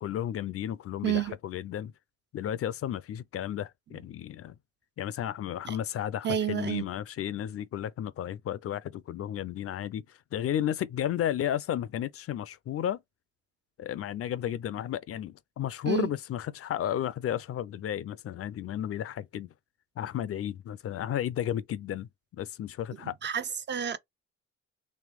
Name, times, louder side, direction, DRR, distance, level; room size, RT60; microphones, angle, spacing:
voice 1, 0.0-1.9 2.3-4.6 5.0-13.0 13.8-19.5 20.0-23.1, left 10 dB, 50° left, 0.4 m, -33 dB
voice 2, 1.0-1.4 5.6-5.8 6.2-6.9 15.8-16.1 23.2-24.0, right 9 dB, 35° right, 0.5 m, -29 dB
3.2 x 3.2 x 3.4 m
cardioid pair, 90°, 30 cm